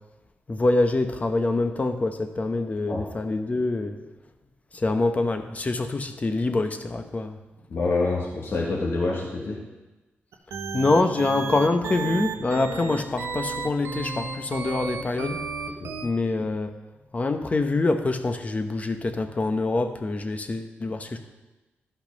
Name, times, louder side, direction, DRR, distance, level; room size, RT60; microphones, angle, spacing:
voice 1, 0.5-4.0 4.7-7.4 10.7-15.4 16.0-16.7 17.1-21.2, left 2 dB, 35° left, 6 dB, 1.0 m, -25 dB
voice 2, 7.7-9.6 15.8-15.9, left 3 dB, 65° left, -4 dB, 1.7 m, -26 dB
sound 1, 10.3-16.1, right 5 dB, 90° right, 1.0 m, -32 dB
12.5 x 5.8 x 5.3 m, 1.1 s
cardioid pair, 85°, 4 cm